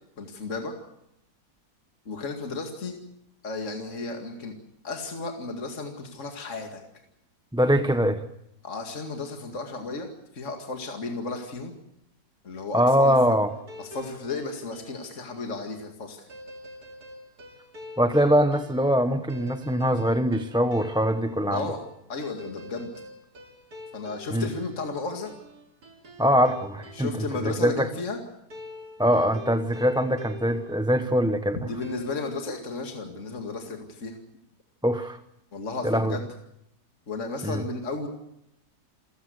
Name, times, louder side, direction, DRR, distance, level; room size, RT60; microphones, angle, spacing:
voice 1, 0.2-0.7 2.1-3.0 3.4-4.5 4.8-6.8 8.6-11.7 12.4-13.1 13.8-16.3 21.5-21.8 22.1-22.9 23.9-25.3 26.9-28.2 31.7-34.2 35.5-36.2 37.1-38.1, left 3 dB, 50° left, 4 dB, 2.6 m, -34 dB
voice 2, 7.5-8.2 12.7-13.5 18.0-21.7 24.3-24.5 26.2-27.9 29.0-31.6 34.8-35.2 35.8-36.2 37.4-37.6, equal, 5° right, 9 dB, 0.8 m, -23 dB
sound 1, 13.5-15.3 16.3-27.5 28.5-31.4 31.8-32.3, left 2 dB, 75° right, 3.4 m, -45 dB
28.5 x 15.5 x 8.0 m, 0.81 s
omnidirectional pair, 1.7 m